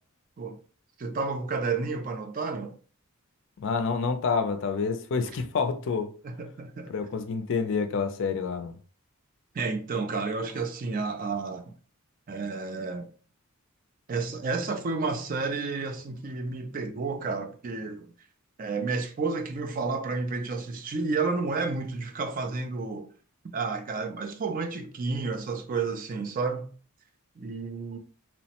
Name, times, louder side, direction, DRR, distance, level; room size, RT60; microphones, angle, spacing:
voice 1, 1.0-2.7 6.2-6.9 9.5-11.7 12.3-13.1 14.1-18.0 18.6-23.1 23.5-26.7 27.4-28.0, right 4 dB, 40° right, 0.4 m, -31 dB
voice 2, 3.6-6.1 6.9-8.8, left 5 dB, 55° left, 0.4 m, -28 dB
3.0 x 2.0 x 2.8 m
head